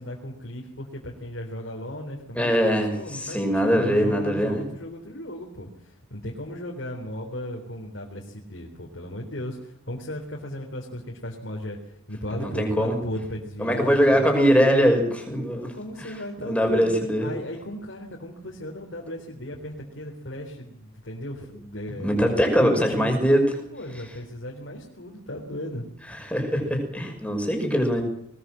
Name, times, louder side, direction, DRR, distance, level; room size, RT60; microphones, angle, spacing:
voice 1, 0.0-14.4 15.5-16.9 17.2-23.1 23.7-25.9, left 1 dB, 65° left, 0 dB, 3.7 m, -36 dB
voice 2, 2.3-4.6 12.4-12.9 13.6-16.2 16.4-17.3 22.0-23.5 26.1-28.0, equal, 5° left, 3 dB, 5.9 m, -22 dB
21.0 x 20.0 x 7.7 m, 0.72 s
head